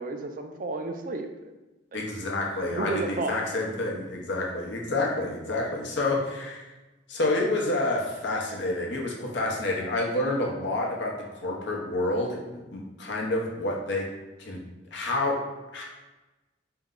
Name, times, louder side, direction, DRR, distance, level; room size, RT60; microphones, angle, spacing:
voice 1, 0.0-1.5 1.9-2.1 2.7-3.4, right 3 dB, 45° right, 5 dB, 0.3 m, -32 dB
voice 2, 1.9-6.6 7.1-14.1 14.4-14.7 14.9-15.4 15.7-15.8, left 2 dB, 70° left, -1 dB, 0.8 m, -28 dB
4.5 x 2.1 x 3.7 m, 1.1 s
head